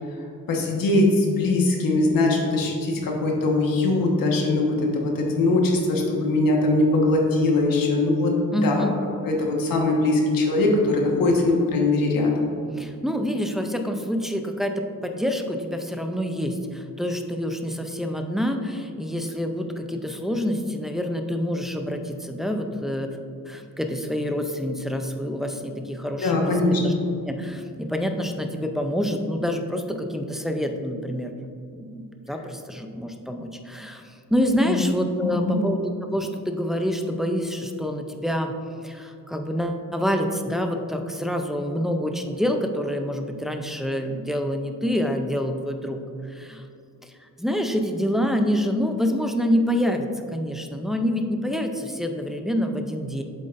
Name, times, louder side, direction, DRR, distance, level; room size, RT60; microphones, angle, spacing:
voice 1, 0.5-8.9 9.2-12.5 26.2-26.9 34.6-34.8 35.3-35.6, left 2 dB, 85° left, -1 dB, 1.4 m, -21 dB
voice 2, 8.5-8.9 12.8-23.2 23.5-26.9 27.2-31.3 31.7-38.6 38.8-46.6 47.0-47.1 47.4-53.2, equal, ahead, 4 dB, 0.4 m, -27 dB
7.9 x 7.5 x 2.5 m, 2.5 s
wide cardioid pair, 135°, 33 cm